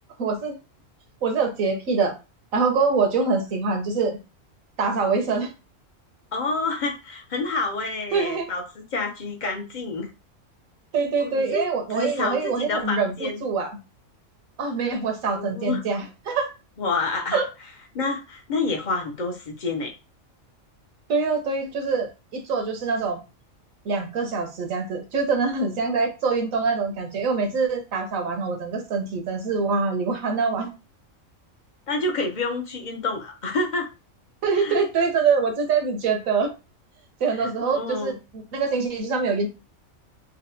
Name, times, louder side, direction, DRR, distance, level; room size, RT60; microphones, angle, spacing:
voice 1, 0.2-0.5 1.2-2.1 2.5-4.2 4.8-5.5 8.1-8.5 10.9-13.7 14.6-16.5 17.3-17.4 21.1-23.2 23.8-30.7 34.4-36.5 37.2-39.5, right 4 dB, 85° right, 4 dB, 1.3 m, -24 dB
voice 2, 6.3-8.6 8.9-10.1 11.2-11.6 11.9-13.4 15.3-15.8 16.8-17.4 17.9-19.9 31.9-33.9 34.5-34.8 37.3-38.2, left 3 dB, 45° left, 3 dB, 0.6 m, -28 dB
4.1 x 2.1 x 2.7 m, 0.28 s
omnidirectional pair, 1.4 m